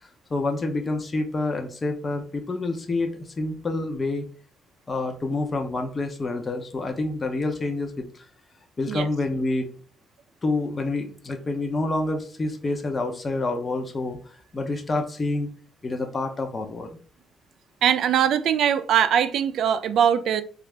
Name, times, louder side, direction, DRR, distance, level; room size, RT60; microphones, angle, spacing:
voice 1, 0.0-4.2 4.9-8.2 8.8-9.7 10.4-15.5 15.8-17.0, left 2 dB, 30° left, 0.7 m, -28 dB
voice 2, 17.8-20.4, right 9 dB, 70° right, 0.4 m, -21 dB
4.0 x 2.4 x 3.3 m
cardioid pair, 120°, 0 cm